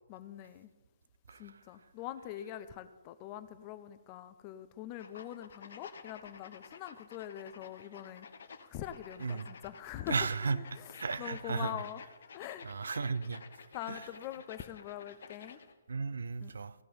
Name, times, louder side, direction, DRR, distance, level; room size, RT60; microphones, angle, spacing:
voice 1, 0.1-0.7 1.4-8.3 8.6-12.0 12.3-12.7 13.7-15.6 16.4-16.5, left 12 dB, 25° left, 0.6 m, -43 dB
sound 1, 5.0-15.7, left 5 dB, 50° left, 1.1 m, -52 dB
voice 2, 10.1-10.6 11.0-11.8 12.6-13.4 13.9-14.0 15.9-16.7, right 4 dB, 60° right, 0.7 m, -34 dB
15.0 x 6.0 x 8.7 m
figure-of-eight pair, 130°, 0 cm